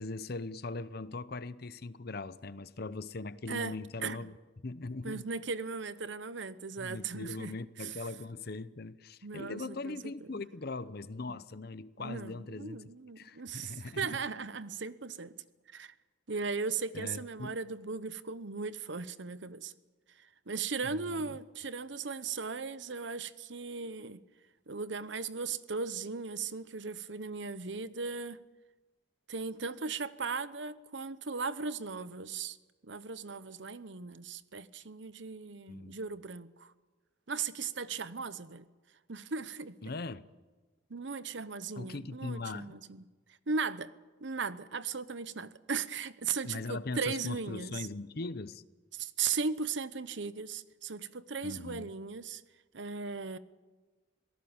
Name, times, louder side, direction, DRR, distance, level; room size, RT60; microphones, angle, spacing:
voice 1, 0.0-4.3 4.6-5.3 6.8-12.8 13.2-14.1 16.9-17.6 20.8-21.4 35.7-36.0 39.8-40.2 41.8-42.8 46.4-48.6 51.4-51.9, left 3 dB, 55° left, 0.8 m, -40 dB
voice 2, 3.5-4.3 5.0-8.0 9.2-10.4 11.3-11.4 12.0-15.3 15.7-15.9 16.3-19.7 20.1-24.2 24.7-28.4 29.3-32.6 32.8-36.7 37.3-38.7 39.1-39.9 40.9-43.1 43.5-43.9 44.2-47.9 48.9-52.4 52.7-53.4, right 5 dB, 70° right, 0.9 m, -37 dB
27.0 x 18.0 x 7.2 m
head